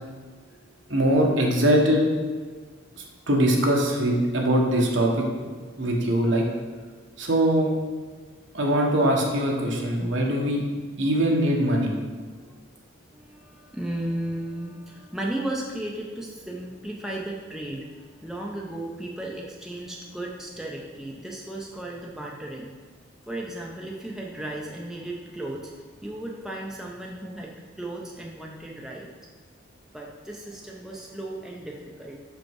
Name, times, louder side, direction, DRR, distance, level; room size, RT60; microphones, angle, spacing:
voice 1, 0.1-1.0 12.4-12.7 13.1-22.7 23.2-29.1 29.9-32.2, right 1 dB, ahead, -2 dB, 0.5 m, -35 dB
voice 2, 0.9-2.0 3.3-5.2 5.8-6.4 7.2-7.7 8.5-10.6 11.0-11.9, right 1 dB, 60° right, -1 dB, 1.2 m, -22 dB
5.7 x 5.3 x 4.6 m, 1.5 s
head